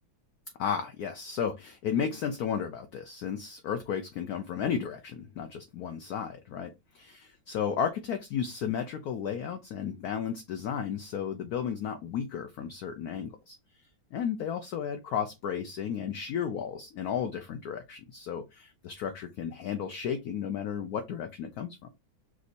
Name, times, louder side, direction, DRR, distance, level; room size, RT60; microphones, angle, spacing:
voice 1, 0.6-13.6 14.1-21.9, left 7 dB, 70° left, 6 dB, 0.9 m, -33 dB
6.2 x 2.7 x 2.5 m, 0.22 s
omnidirectional pair, 2.1 m